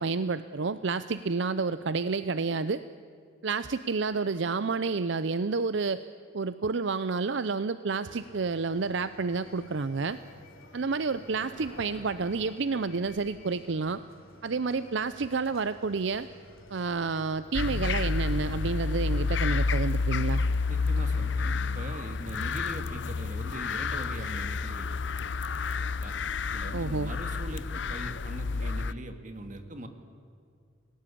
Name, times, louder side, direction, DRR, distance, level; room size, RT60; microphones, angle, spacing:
voice 1, 0.0-2.8 3.4-6.0 6.3-10.2 10.7-14.0 14.4-16.3 16.7-20.4 26.7-27.1, right 4 dB, 65° right, 13 dB, 0.6 m, -30 dB
sound 1, 8.0-18.5, left 1 dB, 85° left, 3.7 m, -52 dB
sound 2, 17.5-28.9, left 4 dB, 60° left, 0.6 m, -30 dB
voice 2, 20.7-25.0 25.8-26.1 26.5-27.6 27.9-29.9, right 1 dB, 40° right, 7 dB, 2.1 m, -41 dB
29.5 x 18.0 x 8.5 m, 2.3 s
head